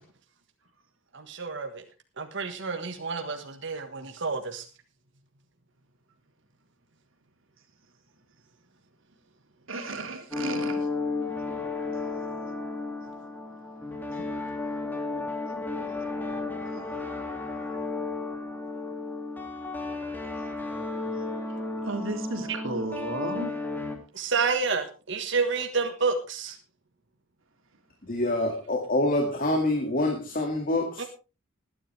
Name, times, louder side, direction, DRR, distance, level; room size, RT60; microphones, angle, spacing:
voice 1, 1.1-1.8 2.2-4.6 24.1-26.6 31.0-31.1, right 4 dB, 60° right, 5 dB, 1.5 m, -29 dB
voice 2, 9.7-10.8 16.6-17.8 21.8-23.5, right 2 dB, 80° right, 4 dB, 2.9 m, -35 dB
sound 1, 10.3-24.0, left 3 dB, 10° left, 2.4 m, -33 dB
voice 3, 28.0-31.0, left 1 dB, 45° left, 3 dB, 2.2 m, -26 dB
20.0 x 10.0 x 3.4 m, 0.32 s
head